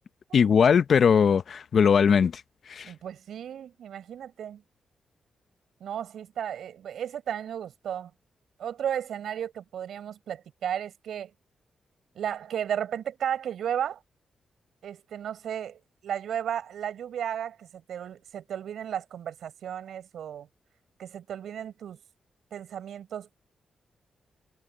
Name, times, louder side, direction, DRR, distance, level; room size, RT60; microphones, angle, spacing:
voice 1, 0.3-2.4 2.7-2.9, left 6 dB, 65° left, 0.8 m, -20 dB
voice 2, 2.8-4.6 5.8-8.1 8.6-11.3 12.1-14.0 14.8-20.5 21.0-22.0 22.5-23.4, right 9 dB, 85° right, 4.8 m, -34 dB
cardioid pair, 80°, 0 cm